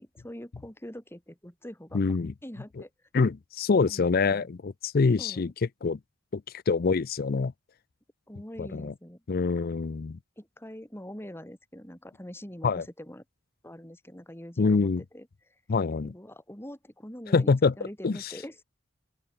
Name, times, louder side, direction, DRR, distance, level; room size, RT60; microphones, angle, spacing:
voice 1, 0.0-2.9 3.9-4.5 5.2-5.5 8.3-9.2 10.4-13.2 13.6-15.5 16.0-18.6, equal, 10° left, 3.6 m, -44 dB
voice 2, 1.9-2.3 3.1-5.5 5.8-6.0 6.3-7.5 8.6-8.9 9.3-10.2 12.6-12.8 14.6-15.0 15.7-16.1 17.3-17.7 18.0-18.3, left 4 dB, 50° left, 0.5 m, -25 dB
open air
head